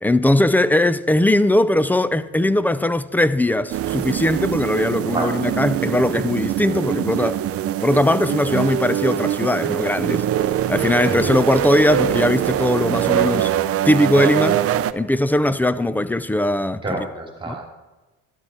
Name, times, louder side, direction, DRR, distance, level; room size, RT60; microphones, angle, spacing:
voice 1, 0.0-7.4 7.8-10.3 10.7-13.5 13.9-14.6 14.9-17.1 17.5-17.6, left 1 dB, 5° left, 0.4 m, -19 dB
sound 1, 3.7-14.9, right 11 dB, 45° right, 0.6 m, -23 dB
voice 2, 16.8-17.7, right 2 dB, 15° right, 2.7 m, -28 dB
12.5 x 12.0 x 4.4 m
cardioid pair, 115°, 32 cm